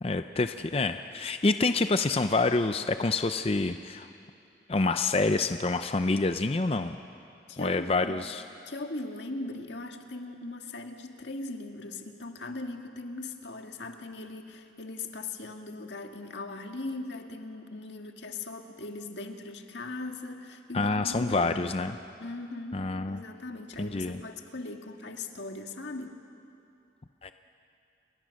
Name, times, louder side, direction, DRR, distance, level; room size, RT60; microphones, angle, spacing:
voice 1, 0.0-4.1 4.7-7.0 7.6-8.4 20.7-22.0 22.7-23.2 23.8-24.2 27.2-27.3, left 3 dB, 35° left, 9 dB, 0.5 m, -27 dB
voice 2, 7.5-8.2 8.6-21.8 22.2-26.2, left 2 dB, 80° left, 4 dB, 1.7 m, -39 dB
29.0 x 22.0 x 6.4 m, 2.6 s
head